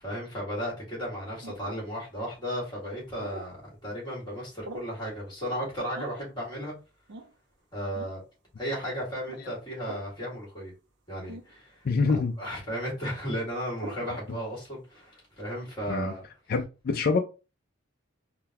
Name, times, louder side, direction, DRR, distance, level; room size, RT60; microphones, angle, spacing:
voice 1, 0.0-6.7 7.7-8.2 8.6-10.7 11.1-11.8 12.4-16.2, equal, 25° left, 1.7 m, -34 dB
sound 1, 1.4-1.8 3.2-3.5 4.6-5.0 5.9-6.3 7.1-7.3 7.9-8.2 9.2-9.4 9.8-10.1 11.3-11.4 12.0-12.3 13.8-14.1, right 3 dB, 60° right, 0.5 m, -42 dB
voice 2, 11.8-12.4 15.9-16.1 16.5-17.2, left 4 dB, 50° left, 0.4 m, -25 dB
3.8 x 2.2 x 2.8 m
head